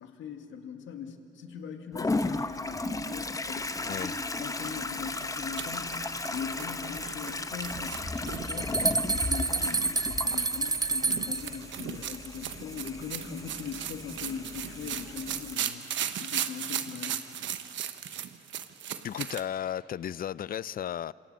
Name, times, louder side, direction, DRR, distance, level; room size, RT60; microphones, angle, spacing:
voice 1, 0.0-15.8 16.2-17.2, left 7 dB, 75° left, 2.0 m, -41 dB
Toilet flush, 1.9-15.5, left 2 dB, 15° left, 0.9 m, -35 dB
voice 2, 3.9-4.2 19.0-21.1, left 10 dB, 45° left, 0.4 m, -34 dB
sound 1, 5.2-19.4, right 10 dB, 70° right, 1.1 m, -37 dB
sound 2, 8.0-11.6, right 3 dB, 20° right, 0.7 m, -29 dB
27.0 x 26.5 x 5.5 m
cardioid pair, 90°, 20 cm